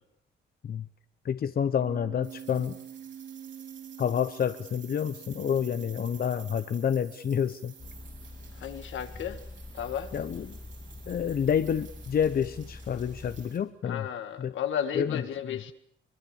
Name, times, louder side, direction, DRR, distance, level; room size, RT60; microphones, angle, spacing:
voice 1, 1.2-2.8 4.0-7.7 10.1-10.6 11.1-14.1 14.4-14.5 15.0-15.2, left 8 dB, 50° left, 11 dB, 0.9 m, -28 dB
sound 1, 1.8-8.8, right 9 dB, 45° right, 1.0 m, -48 dB
sound 2, 2.2-13.6, right 7 dB, 70° right, 6.1 m, -52 dB
sound 3, 7.8-13.5, left 2 dB, 25° left, 1.7 m, -45 dB
voice 2, 8.5-9.4 9.7-10.1 13.8-15.7, left 9 dB, 75° left, 8 dB, 1.9 m, -33 dB
24.5 x 21.5 x 7.1 m, 0.69 s
cardioid pair, 90°, 20 cm